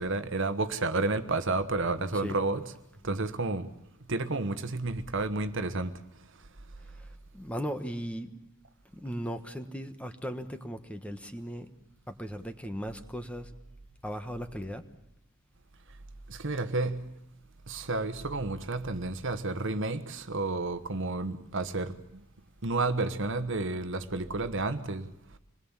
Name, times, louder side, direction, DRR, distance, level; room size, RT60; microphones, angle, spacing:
voice 1, 0.0-2.7 3.0-3.7 4.1-5.9 16.3-17.0 17.7-22.0 22.6-25.1, right 3 dB, 60° right, 1.3 m, -31 dB
voice 2, 7.3-8.3 8.9-11.7 12.1-13.5 14.0-14.8, equal, 5° left, 1.2 m, -37 dB
26.0 x 21.0 x 7.3 m
head